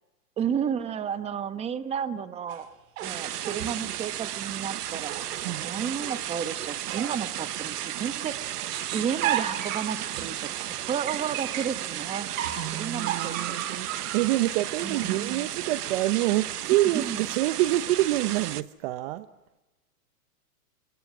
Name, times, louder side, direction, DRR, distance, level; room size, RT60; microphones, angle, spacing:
voice 1, 0.4-2.7 3.0-5.1 5.4-12.3 12.7-13.4 14.8-15.5 16.9-17.2, right 8 dB, 15° right, 11 dB, 1.0 m, -32 dB
sound 1, 2.5-4.0 4.9-6.3 6.9-8.0 8.3-11.8 12.3-14.7, right 11 dB, 55° right, 3.9 m, -35 dB
sound 2, 3.0-18.6, right 12 dB, 75° right, 1.2 m, -34 dB
voice 2, 12.5-19.3, right 16 dB, 40° right, 13 dB, 0.8 m, -27 dB
30.0 x 27.0 x 6.0 m, 1.1 s
hypercardioid pair, 140°, 47 cm